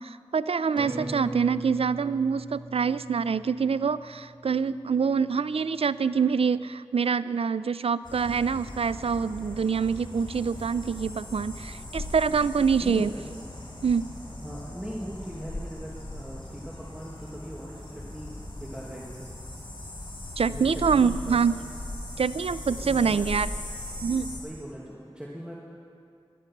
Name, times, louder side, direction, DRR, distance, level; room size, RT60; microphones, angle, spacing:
voice 1, 0.0-13.1 13.8-14.1 20.4-21.6 22.2-23.5 24.0-24.4, right 6 dB, 80° right, 16 dB, 0.4 m, -25 dB
sound 1, 0.8-5.7 6.1-6.2, right 2 dB, 55° right, 3.7 m, -40 dB
voice 2, 0.9-1.3 12.8-13.2 14.4-19.3 20.5-21.4 22.8-23.2 24.3-25.5, equal, 10° right, -5 dB, 2.1 m, -40 dB
sound 2, 8.0-24.4, left 1 dB, 50° left, 4.2 m, -39 dB
17.0 x 11.5 x 6.0 m, 2.5 s
wide cardioid pair, 45°, 10 cm